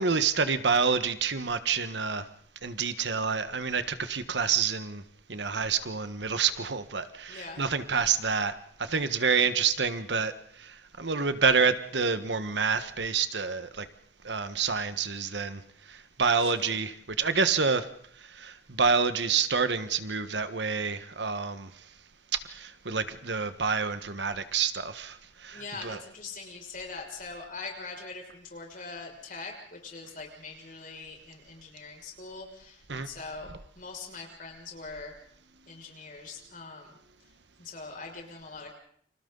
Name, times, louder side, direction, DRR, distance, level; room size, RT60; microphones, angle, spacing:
voice 1, 0.0-2.2 2.6-5.0 5.3-8.5 8.8-10.3 10.6-13.9 14.2-15.6 15.9-16.9 17.2-17.9 18.3-21.7 22.3-26.0 32.9-33.1, right 5 dB, 75° right, 11 dB, 1.5 m, -28 dB
voice 2, 7.3-7.6 16.4-16.8 25.5-35.1 35.7-37.3 37.6-38.7, left 4 dB, 50° left, 1 dB, 6.2 m, -42 dB
29.5 x 26.5 x 4.0 m, 0.62 s
head